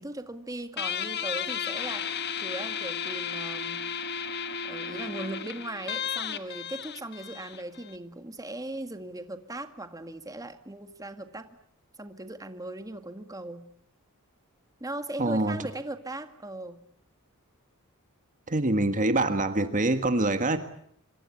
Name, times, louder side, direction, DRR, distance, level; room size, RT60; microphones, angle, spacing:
voice 1, 0.0-3.9 4.6-11.5 12.0-13.7 14.8-16.8, right 1 dB, 15° right, 8 dB, 1.9 m, -38 dB
Guitar, 0.8-8.0, left 7 dB, 50° left, 1.6 m, -34 dB
voice 2, 15.2-15.6 18.5-20.6, right 2 dB, 35° right, 9 dB, 1.6 m, -25 dB
26.5 x 25.0 x 8.5 m, 0.66 s
head